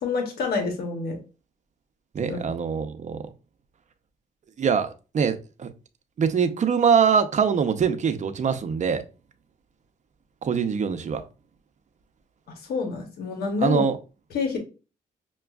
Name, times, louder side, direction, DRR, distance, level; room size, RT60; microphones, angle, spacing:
voice 1, 0.0-1.2 2.3-2.4 12.7-13.8 14.3-14.6, left 4 dB, 85° left, 0.9 m, -27 dB
voice 2, 2.1-3.2 4.6-5.7 6.2-9.0 10.4-11.2 13.6-14.0, right 6 dB, 50° right, 0.6 m, -23 dB
5.9 x 2.3 x 2.3 m
cardioid pair, 80°, 16 cm